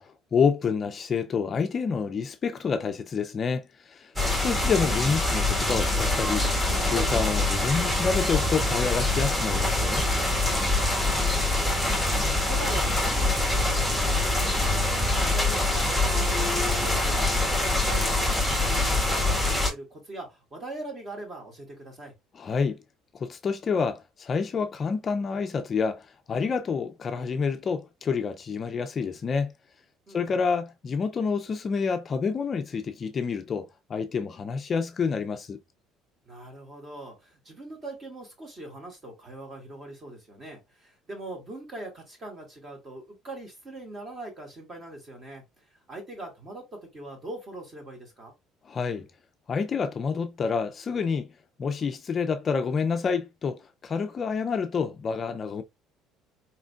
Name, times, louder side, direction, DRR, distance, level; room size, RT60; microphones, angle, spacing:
voice 1, 0.0-6.4 6.8-10.1 22.4-22.8 23.2-26.0 26.3-29.5 30.1-35.6 48.7-49.1 49.5-51.3 51.6-55.6, left 5 dB, 30° left, 0.4 m, -28 dB
voice 2, 4.1-4.5 10.7-11.9 12.4-22.1 30.1-30.4 36.3-45.4 45.9-48.3, right 2 dB, 30° right, 2.0 m, -42 dB
sound 1, 4.2-19.7, left 2 dB, 10° right, 1.5 m, -24 dB
4.3 x 3.7 x 2.4 m
cardioid pair, 135°, 0 cm